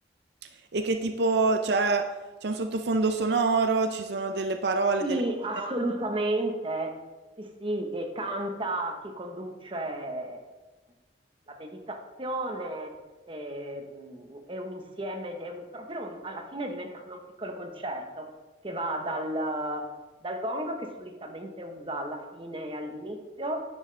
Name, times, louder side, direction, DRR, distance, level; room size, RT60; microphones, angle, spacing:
voice 1, 0.7-2.1 2.4-5.2, right 3 dB, 65° right, 6 dB, 0.5 m, -25 dB
voice 2, 5.0-7.0 7.4-10.4 11.5-12.9 13.3-18.3 18.6-19.8 20.2-23.6, right 1 dB, 30° right, 4 dB, 1.0 m, -33 dB
10.0 x 7.2 x 3.3 m, 1.2 s
head